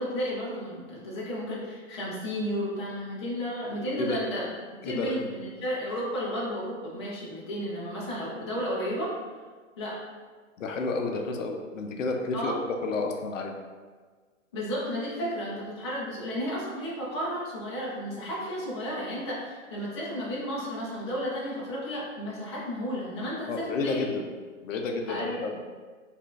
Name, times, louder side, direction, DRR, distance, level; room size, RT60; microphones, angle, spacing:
voice 1, 0.0-4.5 4.8-9.1 9.8-10.0 12.3-12.6 14.5-24.1 25.1-25.4, equal, 20° left, -6 dB, 0.5 m, -33 dB
voice 2, 4.8-5.2 10.6-13.6 23.5-24.3 24.6-25.5, left 3 dB, 70° left, 3 dB, 0.6 m, -31 dB
5.0 x 2.5 x 2.3 m, 1.5 s
hypercardioid pair, 160°, 40 cm